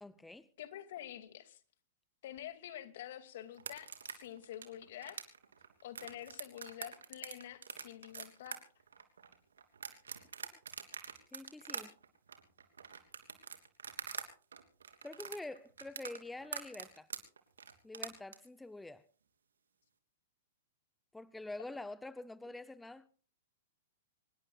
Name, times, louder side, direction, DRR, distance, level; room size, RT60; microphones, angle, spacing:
voice 1, 0.0-0.5 11.3-11.9 15.0-17.1 17.8-19.0 21.1-23.1, left 2 dB, 5° left, 0.6 m, -46 dB
voice 2, 0.6-1.6 2.2-5.2 5.8-8.6, left 12 dB, 60° left, 2.3 m, -48 dB
sound 1, 3.5-14.3 14.5-18.4, right 6 dB, 80° right, 3.2 m, -45 dB
25.5 x 20.5 x 2.4 m
hypercardioid pair, 115°, 0 cm